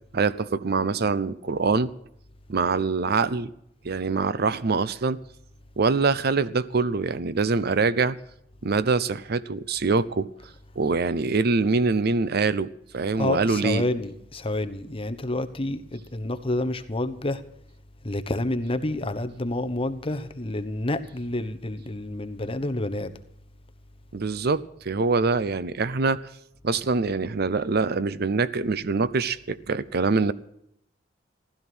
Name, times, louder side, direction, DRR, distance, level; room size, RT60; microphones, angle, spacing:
voice 1, 0.1-1.9 2.5-3.5 3.8-5.2 5.8-8.2 8.6-10.3 10.8-13.8 24.1-26.3 26.6-30.3, right 4 dB, 60° right, 0.7 m, -24 dB
voice 2, 13.2-17.4 18.0-23.1, left 1 dB, 30° left, 1.1 m, -29 dB
15.5 x 13.0 x 6.1 m
head